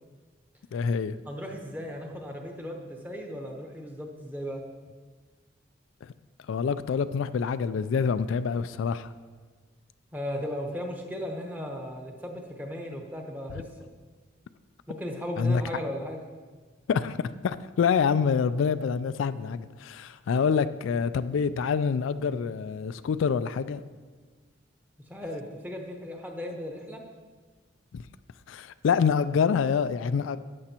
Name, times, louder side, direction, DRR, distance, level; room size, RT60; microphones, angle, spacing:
voice 1, 0.7-1.2 6.0-6.1 6.5-9.1 13.5-13.6 15.4-15.6 16.9-17.2 17.4-23.8 27.9-28.0 28.5-30.4, left 6 dB, 80° left, 0.3 m, -26 dB
voice 2, 1.3-4.6 10.1-13.9 14.9-16.2 25.1-27.0, equal, 10° right, 1.0 m, -36 dB
13.0 x 8.7 x 2.9 m
head